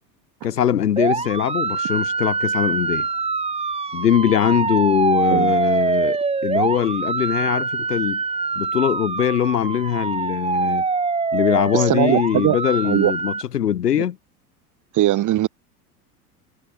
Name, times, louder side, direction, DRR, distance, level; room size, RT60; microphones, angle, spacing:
voice 1, 0.4-3.1 3.9-8.2 8.6-10.9 11.3-14.2, left 10 dB, 85° left, 1.9 m, -21 dB
sound 1, 1.0-13.4, right 4 dB, 15° right, 1.4 m, -24 dB
voice 2, 11.7-12.6 12.8-13.1 14.9-15.5, right 14 dB, 40° right, 2.3 m, -19 dB
hypercardioid pair, 85°, 46 cm